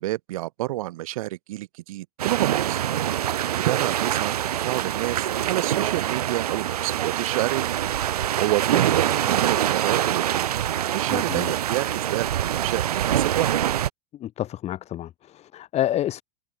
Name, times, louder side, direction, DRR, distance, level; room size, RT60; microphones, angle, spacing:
voice 1, 0.0-2.8 3.3-7.7 8.1-10.5 10.9-12.3 12.6-13.5, right 17 dB, 65° right, 3.6 m, -29 dB
sound 1, 2.2-13.9, right 11 dB, 80° right, 0.4 m, -25 dB
voice 2, 11.1-11.5 14.2-16.2, left 12 dB, 35° left, 1.3 m, -29 dB
hypercardioid pair, 90°, 19 cm